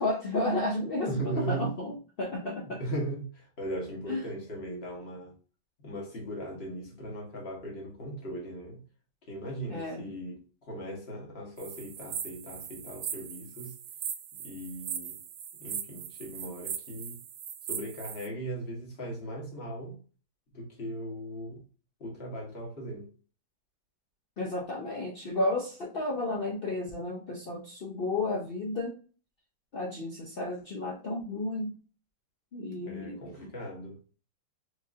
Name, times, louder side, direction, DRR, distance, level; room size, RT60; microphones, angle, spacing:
voice 1, 0.0-2.8 4.1-4.3 9.7-10.2 24.4-29.0 29.7-31.8 32.5-33.2, left 2 dB, 85° left, 0.5 m, -32 dB
voice 2, 1.1-1.7 2.4-5.3 5.8-8.8 9.2-13.8 14.4-15.2 15.6-17.2 17.7-20.0 20.5-21.6 22.0-23.1 32.8-34.0, right 1 dB, 40° left, 1.4 m, -38 dB
sound 1, 11.6-18.3, right 9 dB, 70° right, 0.8 m, -39 dB
4.9 x 2.7 x 2.4 m
omnidirectional pair, 1.9 m